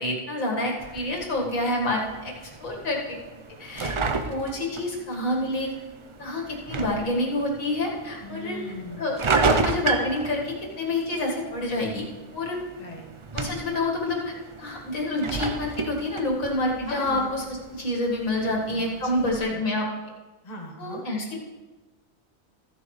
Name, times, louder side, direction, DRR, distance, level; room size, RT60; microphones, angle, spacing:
voice 1, 0.0-2.3 2.6-3.2 3.6-3.9 4.3-5.7 6.2-8.6 9.0-9.2 9.5-12.0 12.3-12.6 13.3-19.9 20.8-21.4, left 1 dB, 85° left, -2 dB, 2.2 m, -28 dB
sound 1, 0.8-19.4, right 4 dB, 50° right, 0.3 m, -32 dB
voice 2, 8.2-9.1 12.8-13.1 16.8-17.3 18.4-19.6 20.4-21.0, left 1 dB, 30° left, 0 dB, 1.4 m, -39 dB
14.5 x 9.9 x 3.2 m, 1.2 s
omnidirectional pair, 1.4 m